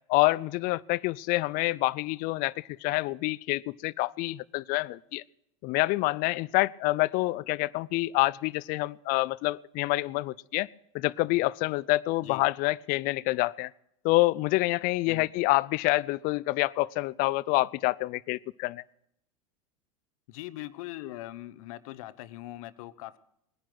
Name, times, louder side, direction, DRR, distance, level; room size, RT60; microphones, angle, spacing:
voice 1, 0.1-5.2 5.6-10.7 10.9-13.7 14.0-18.8, left 20 dB, 50° left, 21 dB, 0.5 m, -27 dB
voice 2, 20.3-23.2, left 16 dB, 65° left, 15 dB, 0.9 m, -41 dB
19.5 x 10.5 x 6.1 m, 0.78 s
hypercardioid pair, 95°, 19 cm